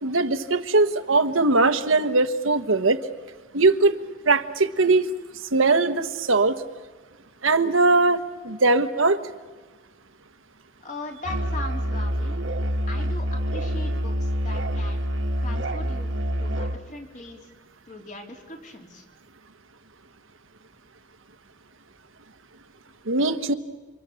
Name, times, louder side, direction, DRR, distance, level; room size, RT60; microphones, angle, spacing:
voice 1, 0.0-3.0 3.5-3.9 4.3-5.1 5.5-6.6 7.4-9.2 23.1-23.5, right 3 dB, 85° right, 11 dB, 1.4 m, -20 dB
voice 2, 10.8-12.4 12.9-15.0 15.4-16.1 16.4-17.5 17.9-19.0, left 2 dB, 40° left, 2 dB, 3.6 m, -39 dB
Musical instrument, 11.2-16.8, equal, 70° right, 1.5 m, -27 dB
29.0 x 26.0 x 7.1 m, 1.3 s
head